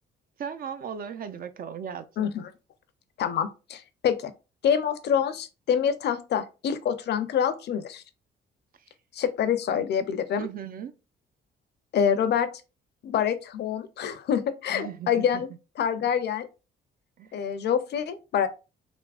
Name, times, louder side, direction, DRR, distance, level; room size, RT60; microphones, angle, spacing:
voice 1, 0.4-2.3 10.4-10.9 14.7-15.4 17.2-17.5, right 8 dB, 45° right, 0.4 m, -37 dB
voice 2, 2.2-2.5 3.2-4.3 4.6-8.0 9.1-10.5 11.9-12.5 13.0-15.5 15.8-16.5 17.3-18.5, left 8 dB, 60° left, 0.4 m, -26 dB
3.4 x 2.0 x 2.3 m
cardioid pair, 90°, 20 cm